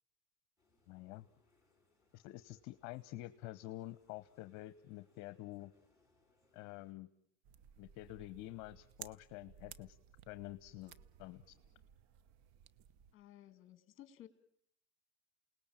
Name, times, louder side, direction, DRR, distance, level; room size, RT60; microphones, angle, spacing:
sound 1, 0.6-6.9, left 2 dB, 10° right, 7.5 m, -75 dB
voice 1, 0.9-1.3 2.1-5.7 6.5-7.1 7.8-10.0 10.3-10.9 11.2-11.5, left 17 dB, 55° left, 13 dB, 1.1 m, -48 dB
sound 2, 7.4-13.1, right 10 dB, 50° right, 1.2 m, -58 dB
voice 2, 13.1-14.3, left 12 dB, 35° left, 12 dB, 2.5 m, -57 dB
29.0 x 19.0 x 8.9 m, 0.74 s
supercardioid pair, 120°, 35 cm